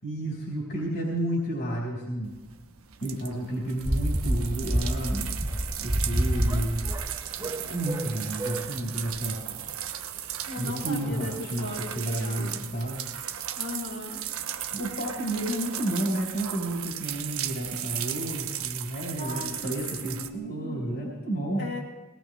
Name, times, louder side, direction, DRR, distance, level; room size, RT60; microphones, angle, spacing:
voice 1, 0.0-2.3 3.0-5.3 5.8-6.8 7.4-9.4 10.6-13.0 14.7-21.7, right 1 dB, 50° left, -3 dB, 4.2 m, -31 dB
sound 1, 2.2-20.3, right 10 dB, 75° right, 1.0 m, -36 dB
sound 2, 3.8-8.7 9.1-9.3, right 1 dB, 15° right, 0.7 m, -28 dB
voice 2, 10.4-12.5 13.5-14.2 15.3-15.5 19.1-19.7 20.0-20.9 21.6-21.8, left 2 dB, 80° left, -4 dB, 5.8 m, -37 dB
21.5 x 19.0 x 3.1 m, 1.1 s
head